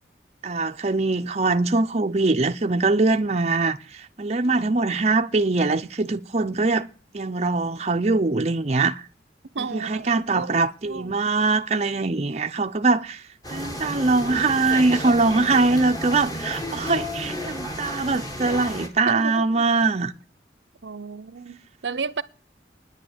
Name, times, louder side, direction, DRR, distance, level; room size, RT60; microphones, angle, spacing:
voice 1, 0.4-6.9 7.1-9.0 9.6-13.2 13.5-20.1, right 3 dB, 40° right, 0.7 m, -22 dB
voice 2, 9.5-11.2 19.1-19.6 20.8-22.2, right 5 dB, 85° right, 0.7 m, -33 dB
sound 1, 13.4-18.9, equal, 20° left, 2.1 m, -32 dB
10.5 x 8.6 x 8.2 m
head